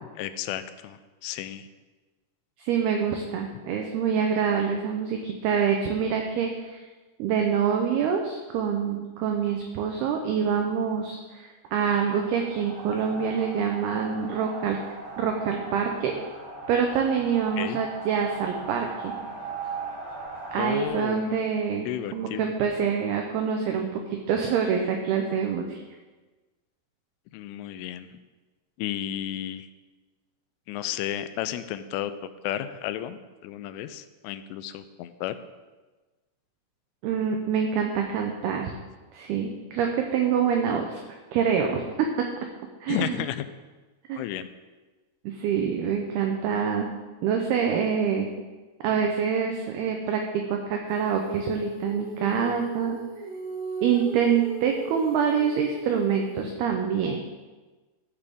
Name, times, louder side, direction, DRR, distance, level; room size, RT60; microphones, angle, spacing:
voice 1, 0.1-1.7 17.6-17.8 20.6-21.4 21.9-22.5 27.3-28.2 28.8-29.7 30.7-32.1 32.4-35.4 42.9-43.5 44.2-44.5, left 12 dB, 90° left, 12 dB, 3.0 m, -33 dB
voice 2, 2.6-6.8 7.2-14.8 15.2-16.1 16.7-19.2 20.5-21.9 22.1-25.8 37.0-38.7 39.1-41.0 41.3-42.3 42.8-43.2 44.1-44.2 45.3-46.9 47.2-48.3 48.8-53.0 53.8-57.2, right 7 dB, 90° right, 3 dB, 2.2 m, -26 dB
sound 1, 11.8-20.9, right 4 dB, 50° right, 2.5 m, -38 dB
Female singing, 50.9-56.6, equal, 30° left, 0.8 m, -37 dB
14.5 x 6.7 x 3.6 m, 1.3 s
omnidirectional pair, 5.4 m